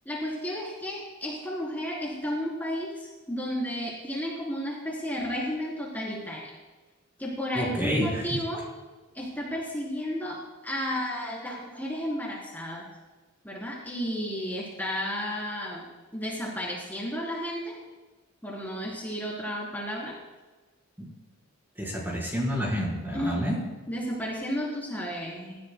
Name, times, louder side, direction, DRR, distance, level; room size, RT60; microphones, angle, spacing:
voice 1, 0.1-6.4 7.2-8.7 9.1-10.4 10.6-12.9 13.4-15.9 16.1-17.7 18.4-20.1 23.1-23.5 23.9-25.6, equal, 10° left, -5 dB, 4.0 m, -32 dB
voice 2, 7.5-8.2 21.0-21.1 21.8-23.6, equal, 10° right, -4 dB, 4.4 m, -29 dB
29.0 x 15.5 x 2.3 m, 1.3 s
head